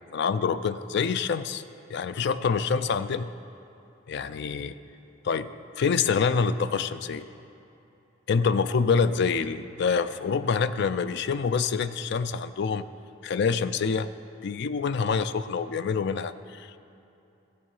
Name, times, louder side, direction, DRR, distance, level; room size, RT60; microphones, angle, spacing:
voice 1, 0.1-1.6 1.9-3.3 4.1-4.8 5.2-5.5 5.8-7.2 8.3-12.8 13.2-14.1 14.4-16.8, left 5 dB, 60° left, 13 dB, 0.4 m, -26 dB
15.0 x 6.7 x 5.5 m, 2.8 s
head